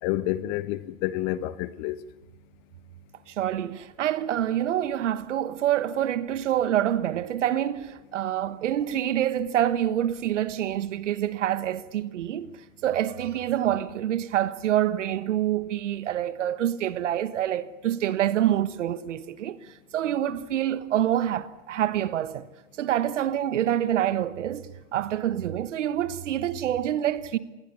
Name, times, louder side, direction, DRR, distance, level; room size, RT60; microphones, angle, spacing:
voice 1, 0.0-2.0, left 15 dB, 50° left, 1.4 m, -29 dB
voice 2, 3.3-12.5 12.8-19.6 19.9-22.5 22.8-27.4, right 11 dB, 70° right, 1.5 m, -26 dB
27.0 x 21.5 x 7.0 m
hypercardioid pair, 95°, 37 cm